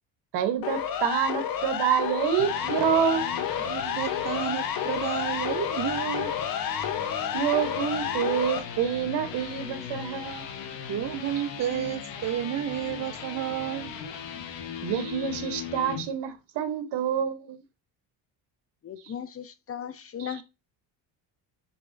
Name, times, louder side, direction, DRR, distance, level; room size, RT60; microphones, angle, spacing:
voice 1, 0.3-3.3 7.3-10.5 14.8-17.6 20.2-20.3, right 8 dB, 70° right, 1.0 m, -27 dB
Siren, 0.6-8.6, left 9 dB, 50° left, 0.9 m, -30 dB
sound 1, 2.1-16.0, left 7 dB, 80° left, 1.1 m, -38 dB
voice 2, 3.7-6.3 10.9-13.9 14.4-14.5, right 11 dB, 40° right, 0.4 m, -31 dB
voice 3, 18.8-20.4, left 8 dB, 35° left, 0.5 m, -37 dB
6.9 x 2.9 x 2.6 m
cardioid pair, 90°, 44 cm